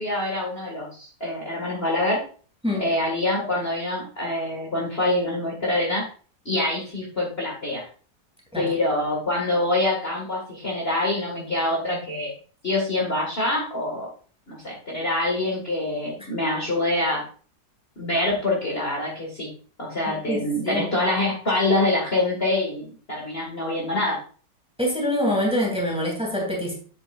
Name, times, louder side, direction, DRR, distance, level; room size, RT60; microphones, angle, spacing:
voice 1, 0.0-2.2 2.8-6.0 6.5-7.9 8.6-12.3 12.6-14.1 14.5-17.2 18.0-19.5 19.8-24.2, left 1 dB, 35° left, -2 dB, 2.0 m, -25 dB
voice 2, 20.1-20.9 24.8-26.7, left 1 dB, 5° right, -1 dB, 2.7 m, -25 dB
8.7 x 8.0 x 2.4 m, 0.41 s
omnidirectional pair, 1.8 m